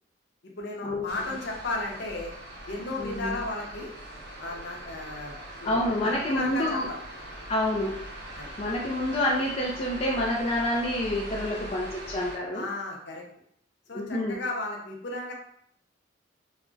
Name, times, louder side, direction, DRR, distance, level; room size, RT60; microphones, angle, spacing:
voice 1, 0.6-2.3 2.7-3.9 4.4-5.4 5.6-7.0 8.4-8.5 12.5-13.2 13.9-15.3, left 2 dB, 60° left, -1 dB, 0.6 m, -34 dB
sound 1, 1.1-12.4, right 1 dB, 55° right, 0.7 m, -41 dB
voice 2, 3.0-3.4 5.6-6.9 7.5-7.9 8.6-12.7 13.9-14.4, left 1 dB, 30° left, -3 dB, 0.3 m, -28 dB
2.3 x 2.0 x 3.8 m, 0.70 s
head